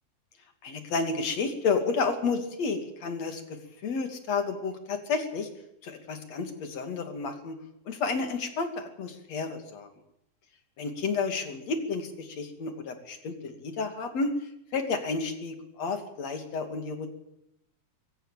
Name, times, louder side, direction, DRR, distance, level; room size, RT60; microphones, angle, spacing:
voice 1, 0.6-5.5 5.8-7.6 7.9-9.9 10.8-14.3 14.7-17.1, left 4 dB, 50° left, 8 dB, 3.4 m, -31 dB
22.5 x 17.0 x 7.4 m, 0.81 s
omnidirectional pair, 4.1 m